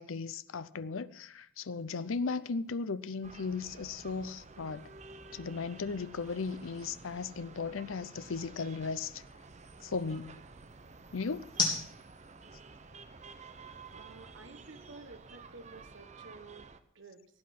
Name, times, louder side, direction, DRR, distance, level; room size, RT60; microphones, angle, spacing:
voice 1, 0.0-4.9 5.3-9.2 9.8-10.4 11.1-11.5, left 4 dB, 80° left, 0.6 m, -36 dB
sound 1, 1.8-16.0, left 4 dB, 25° left, 3.4 m, -44 dB
sound 2, 3.2-16.8, right 4 dB, 35° right, 0.8 m, -52 dB
voice 2, 13.9-17.2, right 3 dB, 65° right, 1.4 m, -52 dB
17.0 x 8.5 x 6.0 m
head